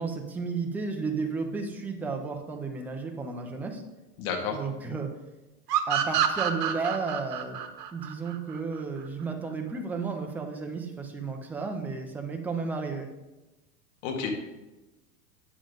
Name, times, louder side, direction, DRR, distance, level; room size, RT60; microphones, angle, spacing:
voice 1, 0.0-3.8 4.5-5.1 5.9-7.6 7.9-13.1, right 4 dB, 5° right, 3 dB, 0.3 m, -33 dB
voice 2, 4.2-4.6 14.0-14.3, left 6 dB, 55° left, 2 dB, 2.0 m, -30 dB
sound 1, 5.7-9.1, right 10 dB, 80° right, 1.1 m, -28 dB
8.8 x 7.2 x 3.7 m, 1.1 s
hypercardioid pair, 125°, 47 cm